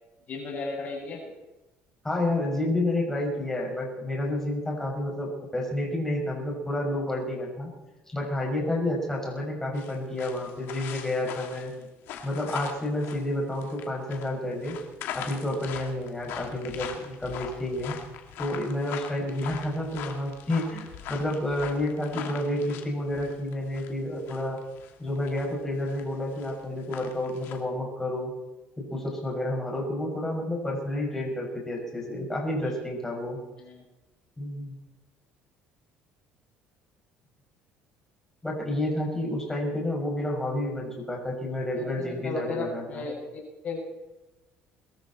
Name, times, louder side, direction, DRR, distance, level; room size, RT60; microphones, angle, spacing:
voice 1, 0.3-1.3 11.7-11.8 16.3-16.7 19.4-19.5 22.1-22.3 32.6-32.7 33.6-33.8 41.7-43.8, left 3 dB, 45° left, -8 dB, 6.7 m, -36 dB
voice 2, 2.0-7.7 8.1-11.7 12.2-14.8 15.1-17.9 18.4-24.6 25.0-28.3 28.8-33.4 34.4-34.7 38.4-43.0, left 1 dB, 10° left, -2 dB, 6.2 m, -30 dB
sound 1, 9.7-23.9 24.2-25.5 25.8-26.0 26.3-26.6 26.9-27.6, left 8 dB, 70° left, 2.4 m, -41 dB
22.5 x 13.0 x 4.4 m, 1.1 s
cardioid pair, 115°, 4 cm